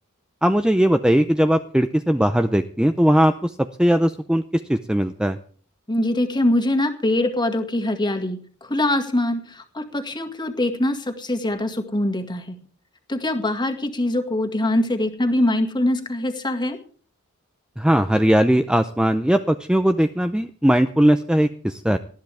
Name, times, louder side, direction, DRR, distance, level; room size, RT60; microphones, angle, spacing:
voice 1, 0.4-3.5 3.8-4.4 4.7-5.4 17.8-22.0, equal, 5° right, 9 dB, 0.5 m, -19 dB
voice 2, 5.9-12.6 13.1-16.8, left 1 dB, 20° left, 5 dB, 2.0 m, -23 dB
19.5 x 13.5 x 3.5 m, 0.43 s
head